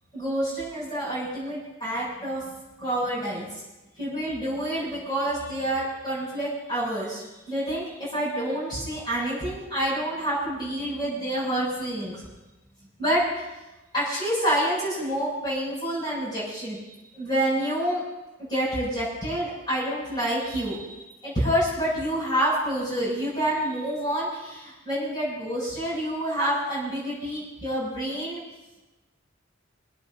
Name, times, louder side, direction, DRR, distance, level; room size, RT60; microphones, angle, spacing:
voice 1, 0.1-2.5 2.8-3.5 4.0-12.2 13.0-13.4 13.9-16.8 17.1-18.0 18.5-28.4, right 1 dB, 25° left, -7 dB, 7.1 m, -28 dB
22.5 x 17.5 x 2.8 m, 1.1 s
head